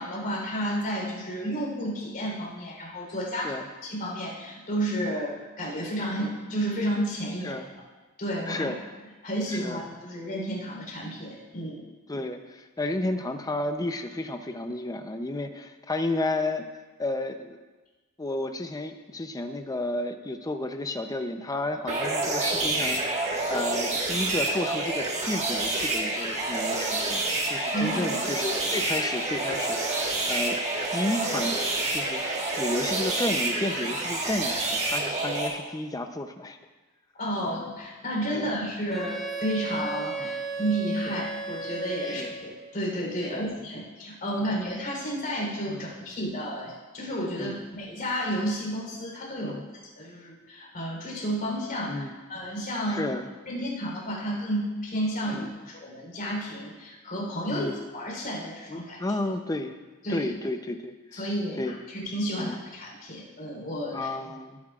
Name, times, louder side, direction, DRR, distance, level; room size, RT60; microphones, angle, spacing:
voice 1, 0.0-3.6 3.8-7.6 8.2-8.7 9.2-11.8 27.7-28.2 37.2-49.6 50.0-52.0 52.3-53.1 53.5-59.0 60.0-60.3 61.1-64.1, equal, 45° left, -2 dB, 3.7 m, -31 dB
voice 2, 9.5-9.8 11.6-11.7 12.1-16.7 17.0-17.6 18.2-30.6 30.9-31.6 31.9-32.2 32.6-36.6 37.4-37.7 38.3-38.5 40.2-40.4 41.1-41.2 42.1-42.3 43.3-43.5 45.7-45.9 47.4-47.6 49.4-49.6 51.9-52.1 52.9-53.3 55.3-55.5 57.5-57.8 58.7-59.8 60.1-61.3 61.6-61.7 62.4-62.6 63.9-64.6, left 2 dB, 15° left, 7 dB, 0.6 m, -32 dB
sound 1, 21.9-35.5, right 2 dB, 30° right, 1.6 m, -28 dB
Wind instrument woodwind instrument, 38.9-42.6, right 4 dB, ahead, 1.1 m, -35 dB
18.0 x 9.7 x 2.4 m, 1.3 s
head